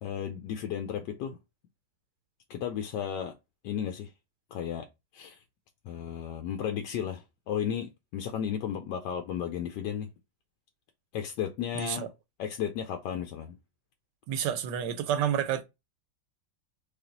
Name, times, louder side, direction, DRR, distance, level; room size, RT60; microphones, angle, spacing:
voice 1, 0.0-1.4 2.5-3.3 3.6-4.1 4.5-4.9 5.1-5.4 5.8-10.1 11.1-12.1 12.4-13.5, left 9 dB, 80° left, 1.2 m, -34 dB
voice 2, 11.7-12.1 14.3-15.6, right 9 dB, 80° right, 1.3 m, -29 dB
3.3 x 3.0 x 3.8 m
omnidirectional pair, 1.9 m